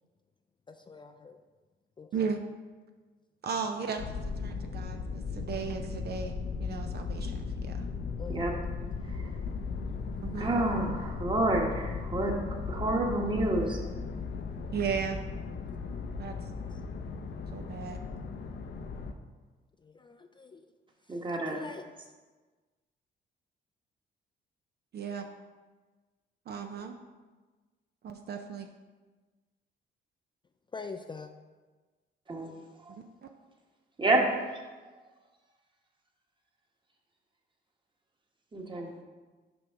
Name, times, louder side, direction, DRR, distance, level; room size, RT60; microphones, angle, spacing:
voice 1, 0.7-1.4 2.0-2.3 8.2-8.6 10.8-11.3 19.8-20.7 21.1-21.2 21.5-21.8 30.7-31.3, left 4 dB, 25° left, 6 dB, 0.4 m, -44 dB
voice 2, 2.1-2.4 3.4-7.9 10.2-10.5 14.7-15.2 16.2-16.5 17.5-18.0 24.9-25.3 26.5-27.0 28.0-28.7 33.0-33.3, right 6 dB, 55° right, 5 dB, 0.5 m, -36 dB
sound 1, 4.0-19.1, left 4 dB, 60° left, 0.7 m, -37 dB
voice 3, 10.4-13.8 21.1-21.6 32.3-32.5 32.8-33.0 34.0-34.2 34.5-34.6 38.5-38.9, right 2 dB, 25° right, 1 dB, 1.2 m, -29 dB
6.0 x 5.1 x 4.6 m, 1.3 s
cardioid pair, 90°, 20 cm